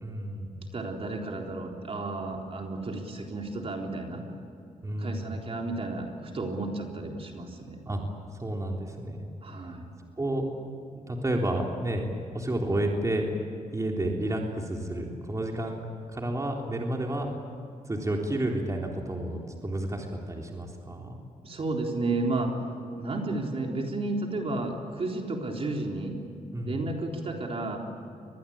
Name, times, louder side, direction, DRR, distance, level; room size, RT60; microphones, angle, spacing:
voice 1, 0.0-0.7 4.8-5.4 7.9-8.0 8.4-9.3 10.2-10.5 10.9-12.0 12.3-13.3 13.7-15.8 16.1-17.3 17.9-21.2 26.5-26.8, right 1 dB, 25° right, 0 dB, 3.6 m, -31 dB
voice 2, 0.7-4.2 5.0-7.8 9.4-9.9 21.4-22.5 23.0-26.2 26.6-27.8, right 2 dB, 45° right, 1 dB, 3.9 m, -32 dB
23.5 x 21.0 x 8.8 m, 2.5 s
cardioid pair, 75°, 14 cm